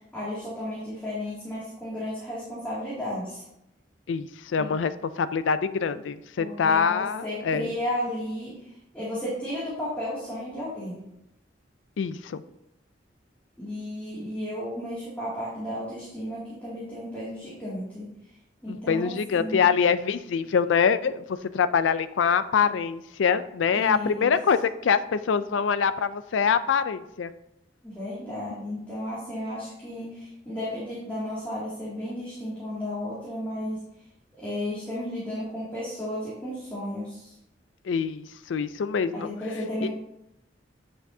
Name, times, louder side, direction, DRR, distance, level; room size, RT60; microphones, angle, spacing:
voice 1, 0.1-3.4 4.6-4.7 6.4-11.0 13.6-18.1 18.6-19.6 23.7-24.3 27.8-33.8 34.4-37.3 39.1-39.9, left 1 dB, 10° left, -10 dB, 2.3 m, -33 dB
voice 2, 4.1-7.7 12.0-12.4 18.7-27.3 37.9-39.3 39.8-39.9, left 6 dB, 85° left, 13 dB, 0.4 m, -25 dB
9.6 x 6.2 x 2.7 m, 0.84 s
head